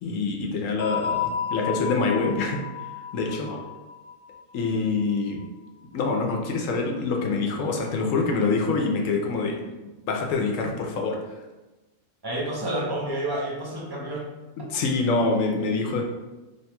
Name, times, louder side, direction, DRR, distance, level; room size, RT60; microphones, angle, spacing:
voice 1, 0.0-2.6 3.1-3.5 4.5-5.4 5.9-9.6 10.1-11.2 14.7-16.0, left 3 dB, 85° left, 2 dB, 1.0 m, -25 dB
sound 1, 0.8-5.4, left 8 dB, 80° right, 1.3 m, -32 dB
voice 2, 12.2-14.3 15.1-15.2 15.9-16.0, right 1 dB, 25° right, -4 dB, 0.6 m, -30 dB
3.1 x 2.2 x 4.2 m, 1.1 s
omnidirectional pair, 1.3 m